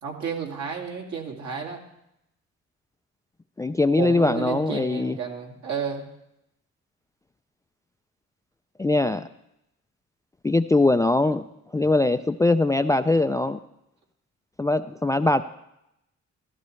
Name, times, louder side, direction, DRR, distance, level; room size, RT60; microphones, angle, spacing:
voice 1, 0.0-1.8 4.0-6.0, right 6 dB, 65° right, 1 dB, 2.2 m, -31 dB
voice 2, 3.6-5.2 8.8-9.3 10.4-11.4 11.7-13.6 14.6-15.4, left 2 dB, 10° left, 11 dB, 0.3 m, -21 dB
14.5 x 13.0 x 3.2 m, 0.82 s
cardioid pair, 90°, 30 cm